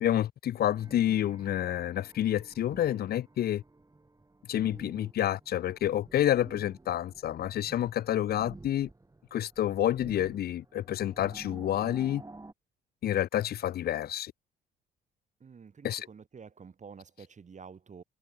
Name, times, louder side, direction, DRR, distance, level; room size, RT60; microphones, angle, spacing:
voice 1, 0.0-3.6 4.5-8.9 9.3-12.2 13.0-14.3 15.8-16.1, left 11 dB, 50° left, 0.5 m, -29 dB
sound 1, 0.7-12.5, right 2 dB, 15° right, 4.5 m, -51 dB
voice 2, 15.4-18.0, right 6 dB, 35° right, 1.8 m, -49 dB
cardioid pair, 90°, 20 cm